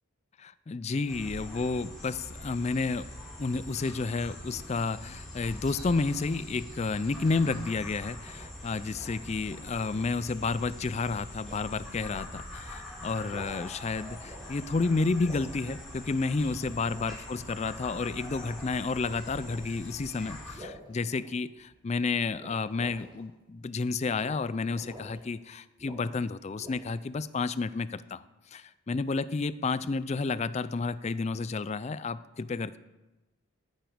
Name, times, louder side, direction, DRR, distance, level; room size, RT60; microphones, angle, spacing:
voice 1, 0.4-3.0 3.4-28.2 28.5-32.8, left 4 dB, 30° left, 15 dB, 0.3 m, -31 dB
sound 1, 1.1-20.5, left 1 dB, ahead, 4.0 m, -43 dB
sound 2, 8.2-10.2 11.4-11.7 12.1-12.3 13.1-13.8 14.2-14.8 15.2-15.5 16.9-17.2 17.8-18.6 19.3-19.7 20.5-21.7 22.3-23.2 24.2-24.4 24.7-25.2 25.8-26.2 26.6-27.0, equal, 20° right, 4.2 m, -48 dB
15.0 x 9.2 x 5.0 m, 1.1 s
head